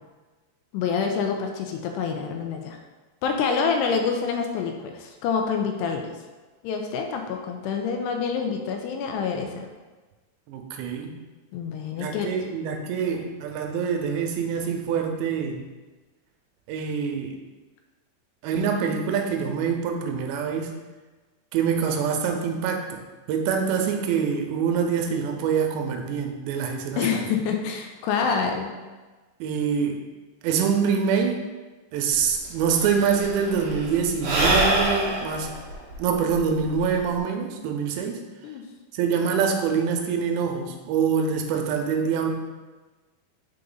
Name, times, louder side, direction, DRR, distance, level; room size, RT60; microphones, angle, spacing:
voice 1, 0.7-2.8 3.2-6.1 6.6-9.7 11.5-12.4 13.1-13.2 27.0-28.8 38.4-38.7, left 6 dB, 85° left, 3 dB, 2.6 m, -27 dB
voice 2, 10.5-11.2 12.0-15.7 16.7-17.4 18.4-20.7 21.5-23.0 23.3-27.2 29.4-30.0 30.4-31.4 31.9-35.5 36.0-38.2 38.9-42.3, right 6 dB, 85° right, 4 dB, 2.9 m, -25 dB
Sigh / Breathing, 32.2-32.3 32.4-37.2, right 1 dB, 60° right, 2.4 m, -26 dB
6.8 x 3.8 x 3.9 m, 1.3 s
omnidirectional pair, 5.0 m